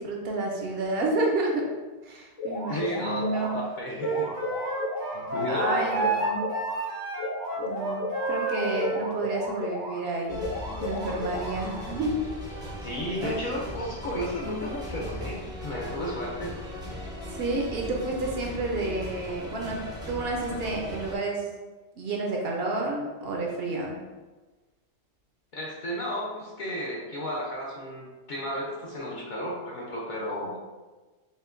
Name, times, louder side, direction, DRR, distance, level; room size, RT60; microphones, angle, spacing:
voice 1, 0.0-1.7 2.0-3.6 5.0-5.2 5.5-6.4 7.6-10.4 10.8-12.2 13.2-13.5 17.3-21.4 22.0-24.0, right 2 dB, 65° right, 0 dB, 0.8 m, -30 dB
sound 1, 2.4-3.6 4.0-6.8 7.2-10.0 10.4-12.0, left 2 dB, 90° left, 1.7 m, -34 dB
voice 2, 2.7-4.3 5.1-6.2 12.8-16.6 25.5-30.6, equal, 55° left, -3 dB, 0.6 m, -33 dB
Wind instrument woodwind instrument, 4.0-9.1, right 2 dB, 85° right, 1.0 m, -30 dB
sound 2, 10.3-21.2, left 1 dB, 5° right, 0.5 m, -38 dB
5.4 x 2.2 x 2.5 m, 1.2 s
omnidirectional pair, 1.2 m